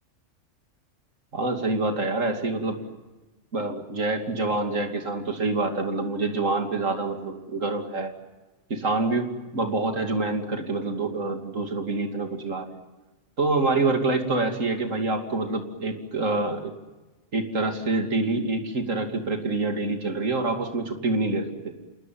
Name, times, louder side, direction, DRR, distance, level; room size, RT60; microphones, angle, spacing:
voice 1, 1.3-2.8 3.5-8.1 8.7-12.8 13.4-16.7 17.3-21.7, right 3 dB, 85° right, 4 dB, 3.1 m, -26 dB
28.0 x 19.5 x 9.3 m, 1.2 s
omnidirectional pair, 1.3 m